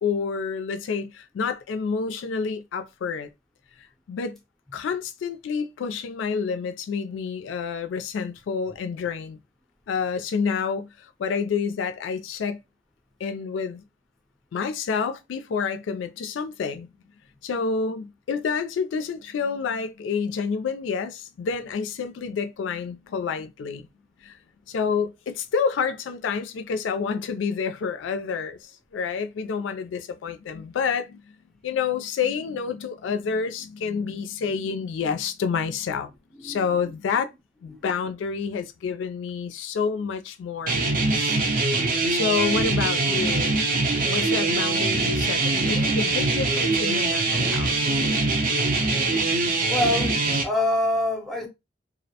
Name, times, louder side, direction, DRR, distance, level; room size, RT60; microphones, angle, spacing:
voice 1, 0.0-3.3 4.1-4.4 4.7-9.4 9.9-12.6 13.2-13.8 14.5-16.9 17.4-23.9 24.2-24.4 24.7-31.2 31.6-36.1 36.4-37.3 37.6-41.4 42.1-43.5 44.0-47.7, left 5 dB, 80° left, 0.3 m, -28 dB
voice 2, 36.4-36.9 37.7-37.8 49.7-51.5, left 1 dB, ahead, 0.5 m, -26 dB
sound 1, 40.7-50.4, right 3 dB, 50° right, 0.6 m, -23 dB
2.5 x 2.0 x 2.7 m
head